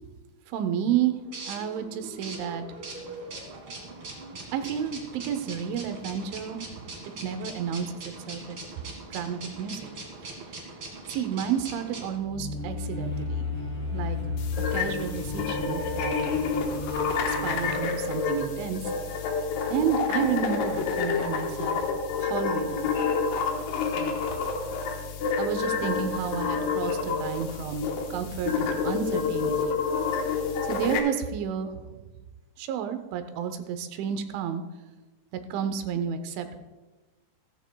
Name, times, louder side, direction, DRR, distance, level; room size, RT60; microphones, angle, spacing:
voice 1, 0.5-1.1 1.5-2.6 4.5-6.6 7.2-7.9 8.3-8.6 9.1-9.9 10.2-10.4 11.1-13.5 13.9-14.2 14.7-16.2 17.3-18.8 19.7-21.8 22.2-22.9 24.0-24.2 25.4-29.8 30.7-31.9 32.6-34.6 35.5-36.6, right 8 dB, 85° right, 8 dB, 3.3 m, -31 dB
sound 1, 0.6-12.2, right 2 dB, 45° right, 1.9 m, -41 dB
sound 2, 12.1-17.8, left 3 dB, 20° right, 2.6 m, -33 dB
sound 3, 14.4-31.0, left 5 dB, 70° left, 2.8 m, -28 dB
15.0 x 14.0 x 2.3 m, 1.2 s
omnidirectional pair, 5.3 m